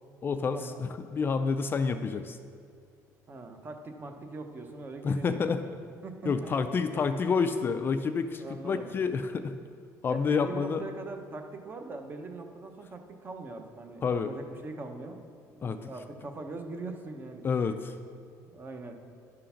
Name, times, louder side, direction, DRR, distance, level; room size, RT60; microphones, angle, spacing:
voice 1, 0.2-2.4 5.0-5.6 6.3-9.6 10.0-10.8 14.0-14.3 15.6-15.9 17.4-17.9, left 5 dB, 30° left, 9 dB, 0.3 m, -29 dB
voice 2, 3.3-5.7 6.0-7.1 8.4-8.9 10.1-15.2 15.5-17.4 18.4-19.0, right 3 dB, 30° right, 5 dB, 0.8 m, -41 dB
11.0 x 3.8 x 5.7 m, 2.2 s
cardioid pair, 130°, 7 cm